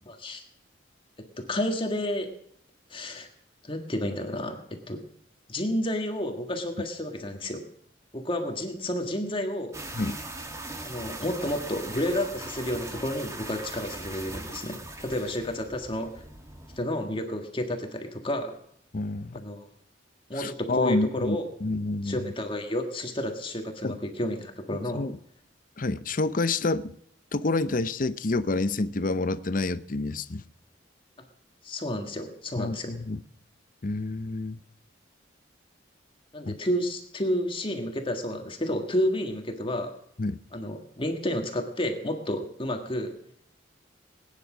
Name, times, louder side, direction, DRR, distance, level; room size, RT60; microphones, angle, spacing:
voice 1, 0.1-0.4 1.4-2.3 2.9-3.3 3.6-4.6 4.9-5.0 5.5-7.6 8.1-9.8 10.8-16.1 16.7-18.5 19.3-19.7 20.3-21.5 22.0-25.0 31.6-32.9 36.3-39.9 40.5-43.1, left 1 dB, 30° left, 1.7 m, -30 dB
sound 1, 9.7-16.8, right 2 dB, 15° right, 1.5 m, -40 dB
voice 2, 18.9-19.5 20.3-22.3 23.8-24.0 24.9-25.1 25.8-27.0 27.3-30.4 32.6-33.2 33.8-34.6 36.5-36.6 40.2-40.4, left 2 dB, 45° left, 0.7 m, -28 dB
20.0 x 9.9 x 6.1 m
head